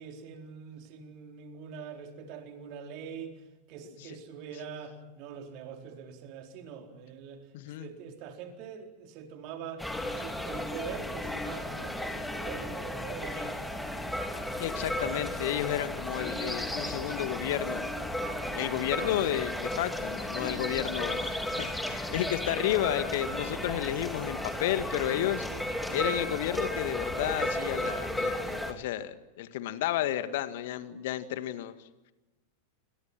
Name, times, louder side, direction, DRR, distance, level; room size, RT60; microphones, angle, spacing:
voice 1, 0.0-3.4 3.7-9.9 10.1-13.7 18.3-18.7 25.3-25.7, right 7 dB, 40° right, 3 dB, 4.5 m, -44 dB
voice 2, 7.5-7.9 14.6-17.8 18.5-25.5 25.9-31.7, left 12 dB, 50° left, 11 dB, 1.9 m, -32 dB
sound 1, 9.8-28.7, left 1 dB, 5° left, 3.1 m, -34 dB
29.5 x 25.5 x 6.2 m, 1.0 s
figure-of-eight pair, 90°, 0 cm